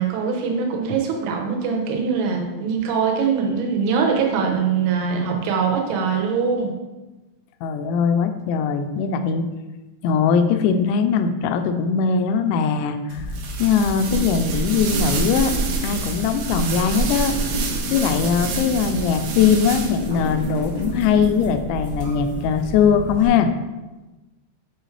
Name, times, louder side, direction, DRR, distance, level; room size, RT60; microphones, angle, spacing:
voice 1, 0.0-6.7, right 6 dB, 90° right, 1 dB, 3.5 m, -22 dB
voice 2, 7.6-9.5 10.0-13.3 13.6-15.5 15.8-17.4 17.9-23.5, left 6 dB, 85° left, 8 dB, 2.7 m, -20 dB
sound 1, 13.1-23.3, right 1 dB, 50° right, 1.0 m, -29 dB
sound 2, 13.3-20.2, right 5 dB, 75° right, 2.6 m, -30 dB
9.0 x 4.9 x 3.2 m, 1.1 s
omnidirectional pair, 5.3 m